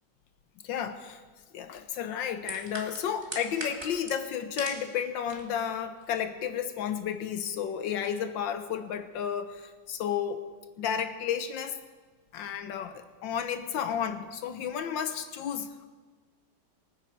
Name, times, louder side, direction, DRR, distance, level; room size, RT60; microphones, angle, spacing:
voice 1, 0.6-1.2 1.5-10.4 10.8-11.8 12.3-15.9, left 8 dB, 75° left, 9 dB, 1.5 m, -32 dB
sound 1, 2.5-4.9 5.2-5.6 6.0-6.1, right 1 dB, 15° right, 1.9 m, -39 dB
24.0 x 9.9 x 4.6 m, 1.4 s
omnidirectional pair, 2.1 m